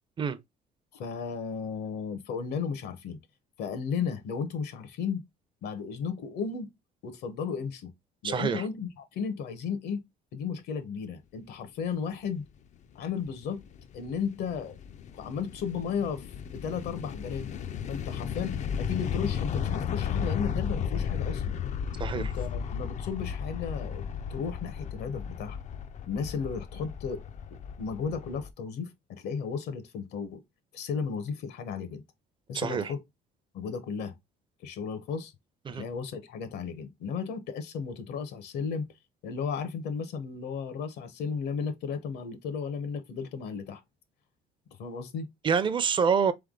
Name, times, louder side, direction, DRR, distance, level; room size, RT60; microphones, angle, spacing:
voice 1, 0.9-3.2 3.6-5.2 5.6-6.7 7.0-7.9 8.2-10.0 10.3-12.5 12.9-13.6 13.9-14.7 15.1-16.3 16.5-17.6 17.9-21.6 22.1-25.6 26.1-27.2 27.8-30.4 30.7-32.0 32.5-33.0 33.5-34.1 34.6-35.3 35.7-38.9 39.2-43.8 44.8-45.3, left 6 dB, 75° left, 1.0 m, -34 dB
voice 2, 8.2-8.6 22.0-22.3 32.5-32.9 35.7-35.8 45.4-46.3, right 6 dB, 30° right, 0.5 m, -26 dB
sound 1, 13.0-28.5, left 7 dB, 45° left, 0.4 m, -34 dB
3.4 x 3.4 x 3.7 m
cardioid pair, 110°, 17 cm